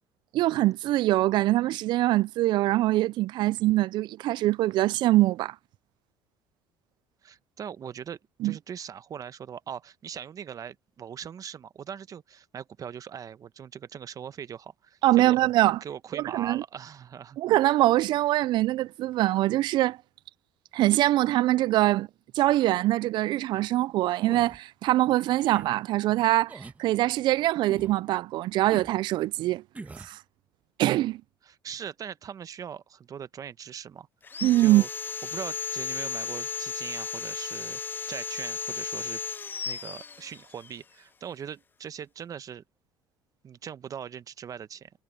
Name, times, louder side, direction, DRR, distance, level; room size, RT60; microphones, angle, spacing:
voice 1, 0.3-5.5 8.4-8.6 15.0-15.8 16.3-16.6 17.4-20.0 20.7-22.1 22.3-29.6 30.0-30.2 30.8-31.2 34.4-34.8, right 16 dB, 65° right, 0.4 m, -23 dB
voice 2, 7.2-15.4 15.8-17.4 31.4-34.1 34.6-34.9 35.3-37.8 38.1-39.2 39.6-42.6 43.4-44.9, right 8 dB, 45° right, 1.0 m, -40 dB
sound 1, 24.2-24.6 25.4-25.7 26.5-26.8 27.6-28.0 28.7-29.0 29.7-30.1, right 3 dB, 15° right, 1.2 m, -42 dB
Sawing, 34.2-40.7, left 6 dB, 25° left, 0.3 m, -35 dB
supercardioid pair, 90°, 9 cm